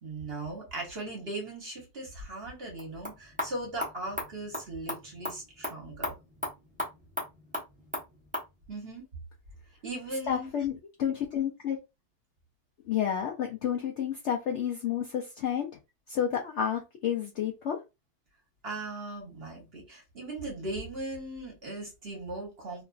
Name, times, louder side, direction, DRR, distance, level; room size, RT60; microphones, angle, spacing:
voice 1, 0.0-6.1 8.7-9.0 9.8-10.5 18.6-22.8, right 2 dB, 45° right, 1.1 m, -38 dB
sound 1, 2.7-8.5, left 1 dB, 5° right, 0.7 m, -38 dB
voice 2, 10.3-11.8 12.9-15.7 16.1-17.8, left 9 dB, 70° left, 0.7 m, -30 dB
2.8 x 2.5 x 2.3 m
omnidirectional pair, 1.6 m